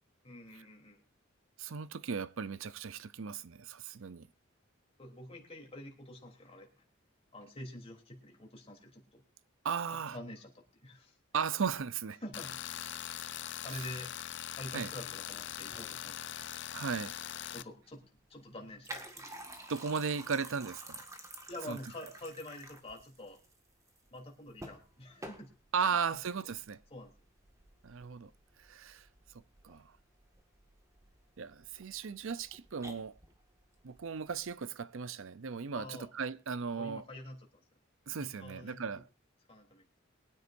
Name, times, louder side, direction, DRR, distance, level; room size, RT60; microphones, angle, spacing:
voice 1, 0.2-1.0 5.0-6.8 7.3-9.2 10.1-11.2 12.2-12.8 13.6-14.1 14.5-16.4 17.5-19.2 21.5-23.4 24.1-25.5 25.8-26.2 26.9-27.1 35.7-36.1 36.7-37.5 38.2-38.9 39.5-39.9, left 1 dB, 30° left, 3.2 m, -47 dB
voice 2, 1.6-4.3 9.6-10.1 11.3-12.2 14.7-14.9 16.7-17.1 19.7-21.0 21.7-21.8 25.7-26.8 27.8-28.3 28.7-29.0 29.6-29.8 31.4-33.2 33.8-37.0 38.1-39.0, right 6 dB, 65° right, 0.6 m, -36 dB
Tools, 12.3-17.6, left 11 dB, 60° left, 0.6 m, -42 dB
sound 1, 15.3-34.5, right 1 dB, 15° right, 1.8 m, -52 dB
23.0 x 9.8 x 2.6 m
head